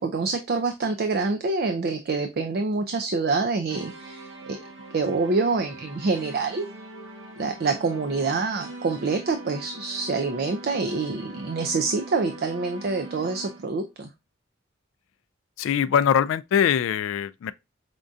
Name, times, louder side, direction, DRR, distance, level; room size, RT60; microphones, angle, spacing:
voice 1, 0.0-4.6 4.9-6.7 7.4-14.1, right 4 dB, 50° right, 0.4 m, -26 dB
sound 1, 3.7-13.8, right 2 dB, 75° right, 1.4 m, -42 dB
voice 2, 15.6-17.5, left 8 dB, 85° left, 0.3 m, -22 dB
5.1 x 2.6 x 2.3 m
head